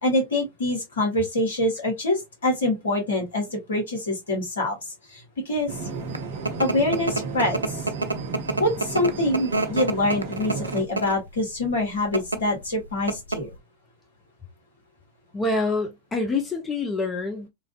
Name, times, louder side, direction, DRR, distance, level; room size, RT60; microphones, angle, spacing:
voice 1, 0.0-5.7 6.6-7.8 8.6-13.5, left 1 dB, 65° left, 1.6 m, -25 dB
sound 1, 5.7-10.8, right 5 dB, 50° right, 0.8 m, -34 dB
sound 2, 5.8-11.3 12.0-12.4 12.8-12.9 13.1-13.6, right 2 dB, 80° right, 0.4 m, -28 dB
voice 2, 15.3-17.5, left 3 dB, 20° left, 0.7 m, -26 dB
3.1 x 2.6 x 2.3 m
figure-of-eight pair, 90°, 0 cm